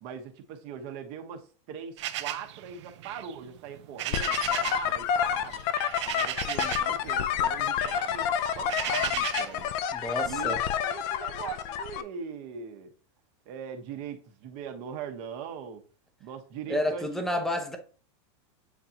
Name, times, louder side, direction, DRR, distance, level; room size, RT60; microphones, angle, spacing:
voice 1, 0.0-5.6 6.0-8.3 8.5-9.7 10.2-10.6 10.8-12.9 13.5-15.8 16.2-17.4, right 7 dB, 40° right, 1.2 m, -40 dB
sound 1, 2.0-4.9 5.2-7.0 7.3-9.6, right 13 dB, 65° right, 0.6 m, -36 dB
sound 2, 4.1-12.0, left 9 dB, 35° left, 0.5 m, -29 dB
voice 2, 9.9-10.6 16.7-17.8, left 1 dB, ahead, 0.7 m, -30 dB
8.5 x 3.9 x 2.9 m
supercardioid pair, 175°, 16 cm